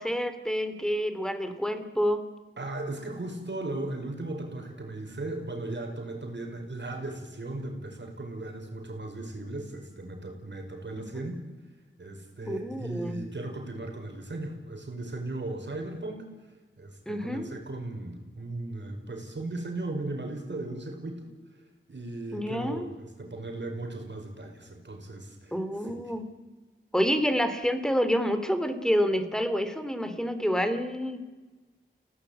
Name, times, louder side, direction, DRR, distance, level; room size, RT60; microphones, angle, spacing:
voice 1, 0.0-2.2 11.0-11.3 12.5-13.2 17.1-17.5 22.3-22.9 25.5-26.2 26.9-31.2, equal, 5° left, 9 dB, 3.0 m, -28 dB
voice 2, 2.6-11.4 12.0-16.3 16.8-21.3 21.9-25.6 25.8-26.1, right 2 dB, 60° right, 3 dB, 5.4 m, -37 dB
29.5 x 17.5 x 8.9 m, 1.3 s
wide cardioid pair, 80°, 20 cm